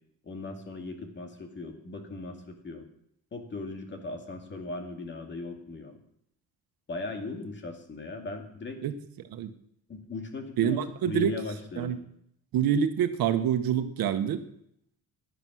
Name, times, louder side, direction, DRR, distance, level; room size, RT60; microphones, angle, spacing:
voice 1, 0.2-2.9 3.3-6.0 6.9-8.8 9.9-12.0, left 3 dB, 30° left, 5 dB, 2.4 m, -38 dB
voice 2, 10.6-11.3 11.8-12.0 12.5-14.4, right 9 dB, 80° right, 9 dB, 1.3 m, -26 dB
15.5 x 11.0 x 6.3 m, 0.71 s
cardioid pair, 160°, 35 cm